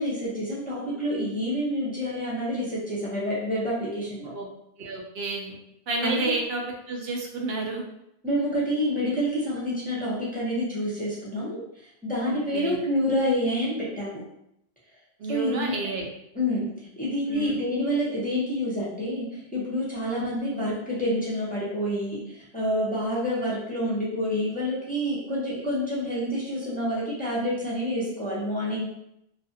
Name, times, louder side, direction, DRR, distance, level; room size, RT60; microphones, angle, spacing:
voice 1, 0.0-4.3 6.0-6.4 8.2-11.6 12.0-14.2 15.3-15.7 16.3-16.7 17.0-19.3 19.5-28.9, equal, 10° left, -8 dB, 0.6 m, -28 dB
voice 2, 4.8-5.6 5.9-7.8 12.3-12.8 15.2-16.1 17.3-17.6 20.1-20.4, right 3 dB, 75° right, 0 dB, 0.8 m, -31 dB
2.5 x 2.4 x 2.6 m, 0.78 s
omnidirectional pair, 1.0 m